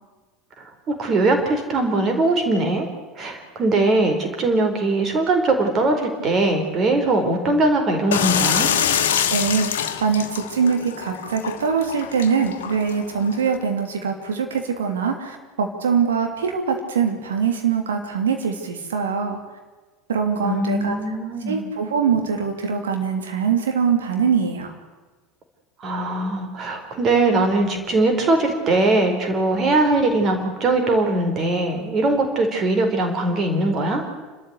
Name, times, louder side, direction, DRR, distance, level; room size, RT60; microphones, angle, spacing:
voice 1, 0.6-2.9 3.1-8.7 20.4-21.6 25.8-34.0, right 2 dB, 35° right, 4 dB, 4.6 m, -21 dB
sound 1, 8.1-13.6, left 9 dB, 70° left, 1.5 m, -25 dB
voice 2, 9.3-19.4 20.1-20.9 21.5-24.7, right 6 dB, 70° right, 4 dB, 3.1 m, -23 dB
28.5 x 13.5 x 8.4 m, 1.3 s
figure-of-eight pair, 70°, 0 cm